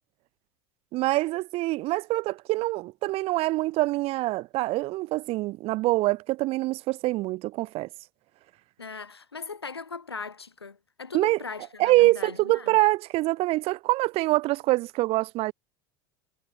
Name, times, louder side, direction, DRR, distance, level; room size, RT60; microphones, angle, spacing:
voice 1, 0.9-7.9 11.1-11.4 11.8-15.5, right 19 dB, 50° right, 1.4 m, -25 dB
voice 2, 8.8-12.8, left 4 dB, 90° left, 6.3 m, -39 dB
figure-of-eight pair, 75°, 13 cm